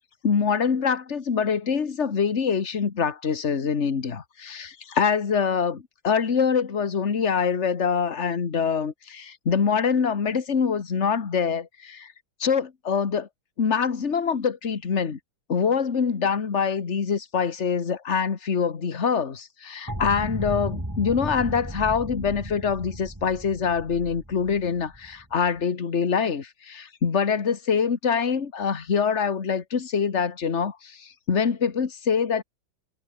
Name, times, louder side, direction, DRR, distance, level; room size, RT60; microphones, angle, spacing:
voice 1, 0.2-12.1 12.4-13.3 13.6-15.2 15.5-32.4, left 6 dB, 35° left, 1.9 m, -25 dB
sound 1, 19.9-25.6, right 1 dB, 10° right, 4.1 m, -35 dB
omnidirectional pair, 2.1 m